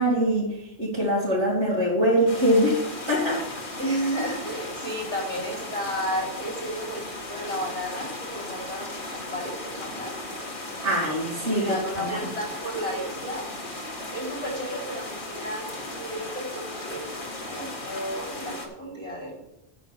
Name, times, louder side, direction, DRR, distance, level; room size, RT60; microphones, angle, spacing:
voice 1, 0.0-2.8 3.1-3.4 10.8-12.2, equal, 85° right, -9 dB, 3.4 m, -23 dB
sound 1, 2.3-18.7, left 2 dB, 45° left, 1.7 m, -36 dB
voice 2, 3.8-10.1 11.4-13.5 14.1-17.1 17.4-19.4, equal, 85° left, -8 dB, 4.7 m, -33 dB
9.0 x 6.2 x 7.4 m, 0.86 s
omnidirectional pair, 1.2 m